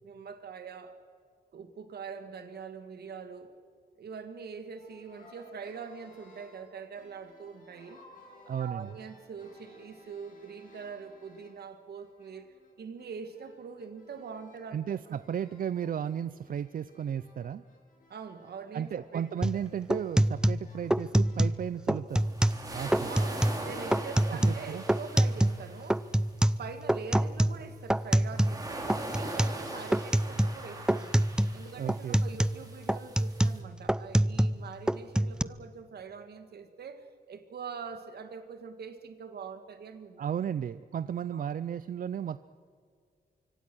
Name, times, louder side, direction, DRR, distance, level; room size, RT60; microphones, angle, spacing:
voice 1, 0.0-1.0 1.5-3.5 4.0-8.0 8.6-14.8 15.1-15.2 18.1-19.7 23.0-26.1 26.4-31.2 31.5-40.3 41.3-41.5, right 6 dB, 80° right, 9 dB, 1.9 m, -44 dB
sound 1, 4.7-11.7 11.9-21.7, left 1 dB, 60° left, 7.2 m, -58 dB
voice 2, 8.5-8.9 14.7-17.6 18.7-22.3 22.7-23.1 24.4-24.8 31.8-32.2 40.2-42.5, right 9 dB, 60° right, 15 dB, 0.5 m, -34 dB
sound 2, 19.4-19.6 19.9-21.6 21.9-22.6 22.9-23.6 23.9-25.6 25.9-28.6 28.9-29.6 29.9-30.6 30.9-31.6 31.9-34.6 34.9-35.4, right 1 dB, 5° right, 0.5 m, -26 dB
sound 3, 22.1-26.2 28.2-33.6, right 1 dB, 20° right, 3.8 m, -41 dB
25.0 x 24.5 x 6.3 m, 2.1 s
wide cardioid pair, 135°, 16 cm